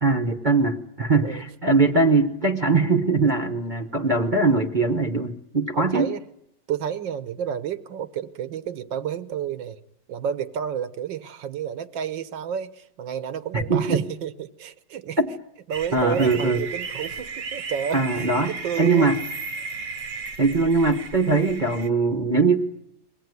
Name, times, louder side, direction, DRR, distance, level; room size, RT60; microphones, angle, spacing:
voice 1, 0.0-6.1 13.5-14.0 15.2-15.3 15.9-16.6 17.9-19.2 20.4-22.6, right 3 dB, 30° right, 6 dB, 1.0 m, -21 dB
voice 2, 5.7-6.2 6.7-9.8 10.1-15.2 15.7-19.1, right 8 dB, 85° right, 13 dB, 1.8 m, -31 dB
sound 1, 15.7-21.9, right 4 dB, 50° right, 1.3 m, -35 dB
22.5 x 17.5 x 9.5 m, 0.79 s
omnidirectional pair, 2.0 m